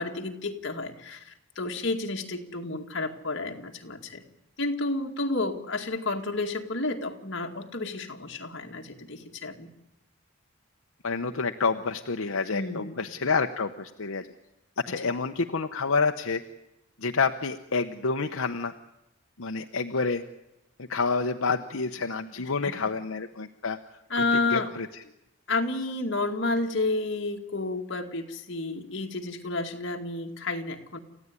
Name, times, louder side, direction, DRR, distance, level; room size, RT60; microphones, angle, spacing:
voice 1, 0.0-4.2 4.6-9.7 12.5-13.0 22.6-22.9 24.1-24.7 25.5-31.0, left 2 dB, 55° left, 3 dB, 2.3 m, -31 dB
voice 2, 11.0-14.3 14.8-16.4 17.0-18.7 19.4-20.2 20.8-23.8 24.3-24.9, left 4 dB, 80° left, 6 dB, 0.9 m, -28 dB
29.0 x 15.0 x 9.8 m, 0.91 s
head